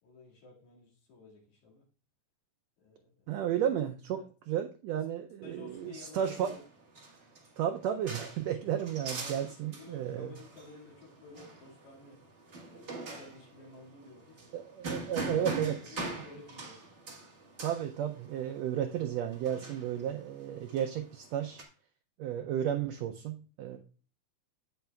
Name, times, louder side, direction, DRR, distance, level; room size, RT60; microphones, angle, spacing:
voice 1, 0.0-1.9 2.8-3.4 4.1-4.3 5.4-6.6 9.2-12.2 12.6-14.5 15.6-16.9 23.7-23.8, left 3 dB, 70° left, -2 dB, 3.4 m, -53 dB
voice 2, 3.3-4.2 4.5-6.5 7.6-10.3 14.5-16.0 17.6-21.6 22.2-23.8, right 10 dB, 80° right, 6 dB, 1.6 m, -33 dB
sound 1, 5.7-21.6, right 3 dB, 55° right, 0.7 m, -43 dB
15.5 x 5.4 x 2.3 m, 0.38 s
omnidirectional pair, 3.4 m